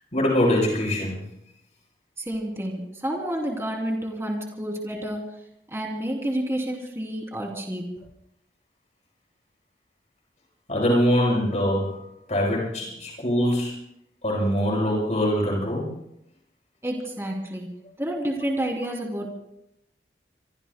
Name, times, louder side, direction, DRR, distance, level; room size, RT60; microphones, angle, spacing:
voice 1, 0.1-1.2 10.7-12.0 12.3-13.8 14.2-15.9, equal, 40° left, -3 dB, 7.5 m, -23 dB
voice 2, 2.2-5.2 5.7-7.9 16.8-17.7 18.0-19.3, right 1 dB, 15° right, 0 dB, 3.0 m, -29 dB
26.5 x 23.5 x 2.2 m, 0.81 s
head